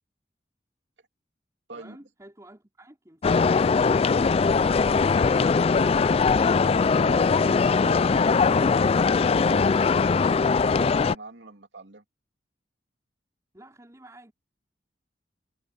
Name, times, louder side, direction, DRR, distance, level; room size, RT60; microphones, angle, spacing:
voice 1, 1.7-6.1 13.5-14.3, right 1 dB, 20° right, 4.4 m, -50 dB
sound 1, 3.2-11.1, left 5 dB, 35° left, 0.3 m, -21 dB
voice 2, 7.0-12.0, right 2 dB, 75° right, 3.0 m, -44 dB
head